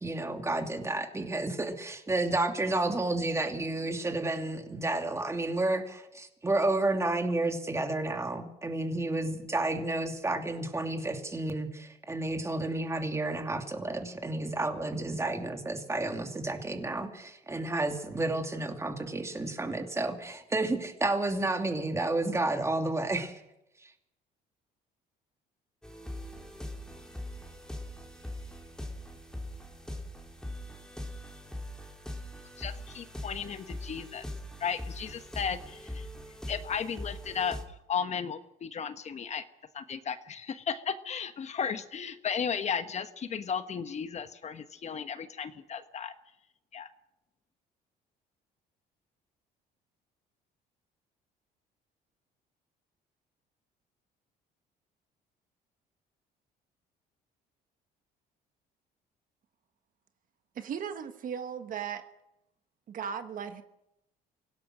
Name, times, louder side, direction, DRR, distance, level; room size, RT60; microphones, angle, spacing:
voice 1, 0.0-23.4, right 2 dB, 15° right, 2.7 m, -31 dB
sound 1, 25.8-37.6, left 1 dB, 5° left, 3.2 m, -41 dB
voice 2, 32.6-34.2 34.6-36.1 36.5-37.6 37.9-39.4 39.7-46.1 46.7-46.9, left 7 dB, 40° left, 1.2 m, -35 dB
voice 3, 60.5-62.0 62.9-63.6, right 7 dB, 55° right, 1.4 m, -36 dB
25.0 x 17.0 x 6.2 m
cardioid pair, 110°, 17 cm